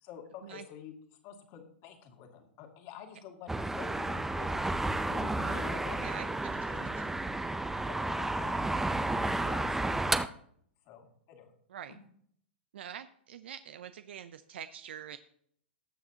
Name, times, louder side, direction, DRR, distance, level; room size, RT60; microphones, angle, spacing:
voice 1, 0.0-4.6 5.1-6.3 6.7-6.9 7.8-8.5 9.2-10.3 10.8-11.5, left 8 dB, 45° left, 3 dB, 2.4 m, -48 dB
sound 1, 3.5-10.3, right 2 dB, 5° right, 0.5 m, -32 dB
voice 2, 12.7-15.2, right 9 dB, 70° right, 11 dB, 0.5 m, -44 dB
19.0 x 7.1 x 2.8 m, 0.65 s
hypercardioid pair, 110°, 6 cm